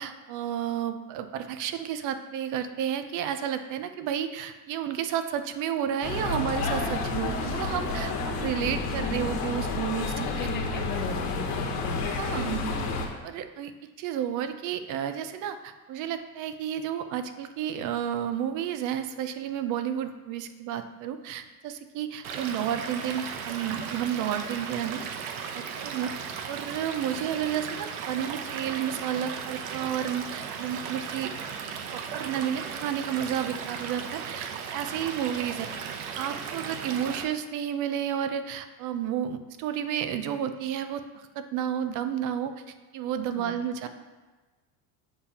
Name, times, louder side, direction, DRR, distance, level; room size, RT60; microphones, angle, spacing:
voice 1, 0.0-10.1 10.7-10.8 12.2-12.6 13.2-26.1 26.5-31.3 31.9-35.7 36.1-42.5 42.9-43.9, right 9 dB, 45° right, 10 dB, 0.5 m, -31 dB
sound 1, 6.0-13.1, left 3 dB, 55° left, 1.1 m, -30 dB
voice 2, 10.0-12.2 43.3-43.5, left 5 dB, 25° left, 3 dB, 0.6 m, -38 dB
Stream / Liquid, 22.2-37.2, right 6 dB, 85° right, 0.8 m, -36 dB
7.7 x 5.7 x 2.9 m, 1.2 s
cardioid pair, 155°, 42 cm